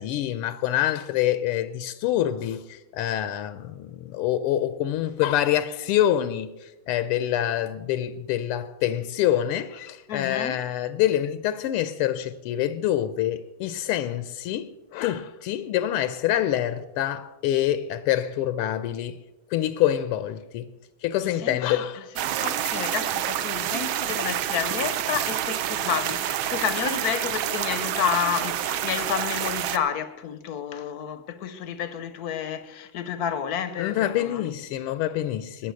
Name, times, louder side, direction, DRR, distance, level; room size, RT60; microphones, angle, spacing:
voice 1, 0.0-19.2 19.5-20.7 21.0-22.1 33.8-35.7, left 12 dB, 85° left, 1.5 m, -26 dB
voice 2, 10.1-10.6 21.2-21.8 22.2-34.5, left 8 dB, 65° left, 0.9 m, -30 dB
sound 1, 22.1-29.8, right 11 dB, 70° right, 1.4 m, -28 dB
20.5 x 7.3 x 6.3 m
omnidirectional pair, 2.4 m